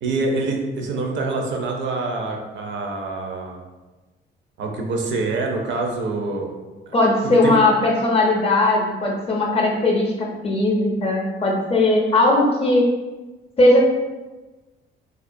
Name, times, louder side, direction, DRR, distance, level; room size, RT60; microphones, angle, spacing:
voice 1, 0.0-3.6 4.6-6.5 6.9-7.0 7.2-7.6, right 3 dB, 70° right, 1 dB, 0.5 m, -25 dB
voice 2, 6.9-12.9 13.6-13.8, left 2 dB, 30° left, -1 dB, 0.5 m, -18 dB
2.3 x 2.1 x 2.5 m, 1.2 s
cardioid pair, 90°, 20 cm